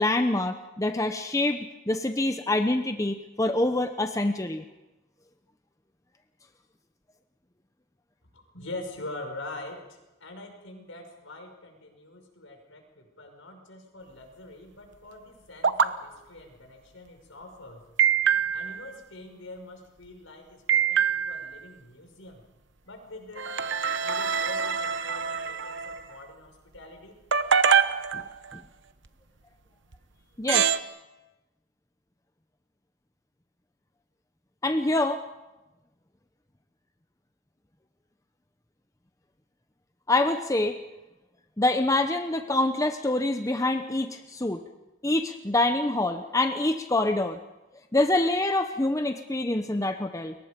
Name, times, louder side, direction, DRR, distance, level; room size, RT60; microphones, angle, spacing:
voice 1, 0.0-1.6 1.9-4.6 30.4-30.7 34.6-35.2 40.1-40.8 41.6-44.6 45.0-47.4 47.9-50.3, left 2 dB, 15° left, 7 dB, 0.8 m, -25 dB
voice 2, 8.3-17.8 18.5-22.4 22.8-23.5 24.0-27.1, left 2 dB, 75° left, 4 dB, 5.7 m, -44 dB
sound 1, 15.6-15.9 18.0-18.8 20.7-21.5 23.4-26.0 27.3-28.6 29.9-30.0 30.5-30.8, right 7 dB, 65° right, 1.0 m, -24 dB
29.5 x 23.0 x 5.2 m, 1.0 s
head